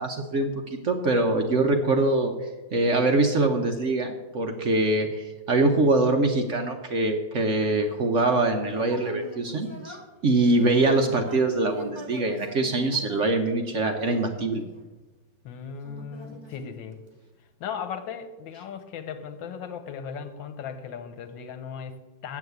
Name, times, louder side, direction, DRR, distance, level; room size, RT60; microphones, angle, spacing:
voice 1, 0.0-2.3 2.7-10.0 10.2-14.6, right 2 dB, 55° right, 4 dB, 0.9 m, -23 dB
Human voice, 7.9-15.2 15.8-17.3, left 1 dB, 20° right, 0.9 m, -43 dB
voice 2, 15.4-17.0 17.6-22.4, left 7 dB, 85° left, 9 dB, 1.6 m, -37 dB
7.9 x 7.2 x 8.0 m, 1.2 s
omnidirectional pair, 2.0 m